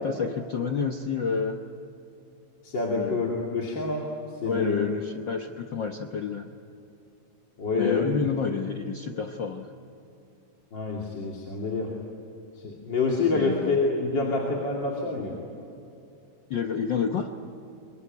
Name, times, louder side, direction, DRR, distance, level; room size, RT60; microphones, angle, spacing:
voice 1, 0.0-1.6 2.9-3.2 4.4-6.5 7.7-9.7 13.3-13.8 16.5-17.3, left 5 dB, 60° left, 4 dB, 1.2 m, -29 dB
voice 2, 2.6-4.1 4.4-4.8 7.6-8.1 10.7-11.9 12.6-15.3, left 3 dB, 40° left, -2 dB, 3.0 m, -27 dB
24.5 x 24.0 x 9.5 m, 2.8 s
omnidirectional pair, 3.5 m